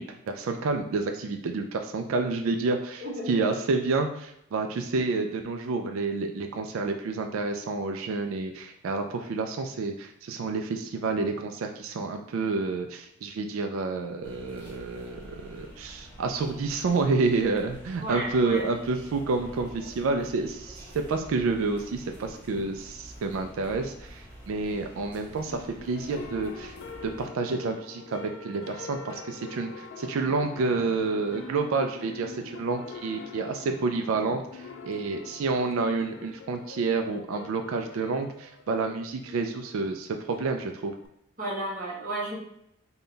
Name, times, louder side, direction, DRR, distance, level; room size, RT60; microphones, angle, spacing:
voice 1, 0.0-26.8 27.0-40.9, right 3 dB, 70° right, 5 dB, 0.3 m, -29 dB
voice 2, 3.0-3.4 18.0-18.6 41.4-42.4, right 1 dB, 40° right, -3 dB, 1.0 m, -33 dB
sound 1, 14.2-27.2, equal, 10° left, 1.1 m, -47 dB
sound 2, 25.5-41.1, left 5 dB, 60° left, 0.4 m, -45 dB
3.7 x 2.2 x 3.8 m, 0.75 s
head